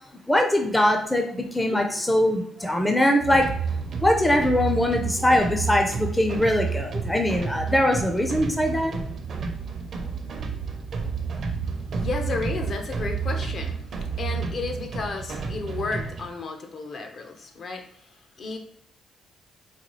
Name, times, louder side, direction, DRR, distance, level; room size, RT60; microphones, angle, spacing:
voice 1, 0.3-3.5 4.0-9.0, left 1 dB, 10° left, 3 dB, 0.5 m, -22 dB
sound 1, 3.2-16.3, right 5 dB, 55° right, 0.6 m, -30 dB
voice 2, 11.9-18.6, left 4 dB, 55° left, 4 dB, 0.6 m, -33 dB
4.1 x 2.3 x 3.0 m, 0.65 s
cardioid pair, 90°, 0 cm